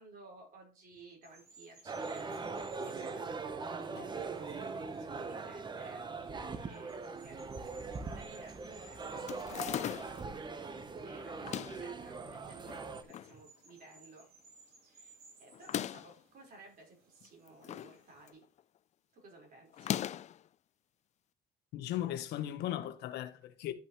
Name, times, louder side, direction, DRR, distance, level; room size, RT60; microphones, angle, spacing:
voice 1, 0.0-7.4 7.6-9.3 9.7-10.5 11.0-14.3 14.8-18.4 19.1-20.0, right 2 dB, 55° right, 4.5 m, -56 dB
sound 1, 1.2-18.3, right 3 dB, 75° right, 4.8 m, -63 dB
sound 2, 1.9-13.0, right 4 dB, 25° right, 0.9 m, -41 dB
sound 3, 9.3-10.3 11.3-11.9 12.7-13.3 13.7-13.8 14.0-14.1 15.5-16.2 17.2-18.0 18.3-18.6 19.7-20.4, left 11 dB, 45° left, 0.4 m, -38 dB
voice 2, 21.7-23.7, left 12 dB, 80° left, 1.1 m, -37 dB
11.5 x 5.5 x 3.0 m
cardioid pair, 110°, 17 cm